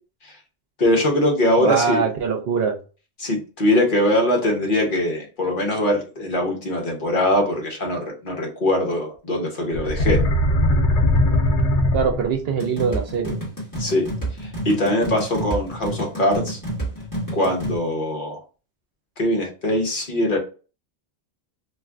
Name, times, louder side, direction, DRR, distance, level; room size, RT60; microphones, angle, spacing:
voice 1, 0.8-2.1 3.2-10.2 13.8-14.1 14.4-16.6 17.3-18.4 19.2-20.4, left 1 dB, 55° left, 1.0 m, -22 dB
voice 2, 1.6-2.8 11.9-13.4, right 6 dB, 65° right, 0.8 m, -23 dB
sound 1, 9.7-12.5, left 1 dB, 85° left, 0.9 m, -19 dB
sound 2, 12.6-17.8, right 1 dB, 20° left, 1.2 m, -29 dB
2.5 x 2.4 x 3.3 m
omnidirectional pair, 1.1 m